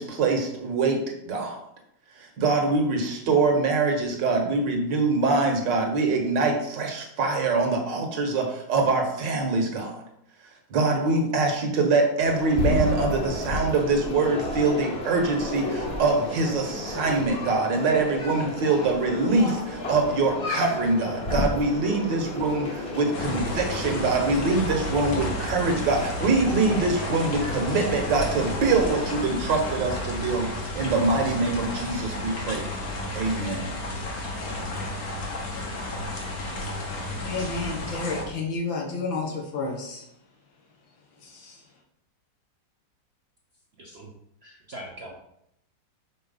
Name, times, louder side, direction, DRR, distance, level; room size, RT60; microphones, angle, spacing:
voice 1, 0.0-1.6 2.2-10.0 10.7-32.7 33.1-33.8, right 3 dB, 70° right, 3 dB, 1.8 m, -24 dB
sound 1, 12.2-29.2, left 1 dB, 35° left, 1.3 m, -32 dB
sound 2, 23.1-38.2, left 1 dB, 55° left, 1.7 m, -32 dB
voice 2, 37.2-40.0 41.2-41.6, left 3 dB, 85° left, 0 dB, 2.2 m, -31 dB
voice 3, 43.8-44.1 44.4-45.2, right 1 dB, 50° right, -1 dB, 0.8 m, -41 dB
5.4 x 4.3 x 5.5 m, 0.76 s
omnidirectional pair, 2.1 m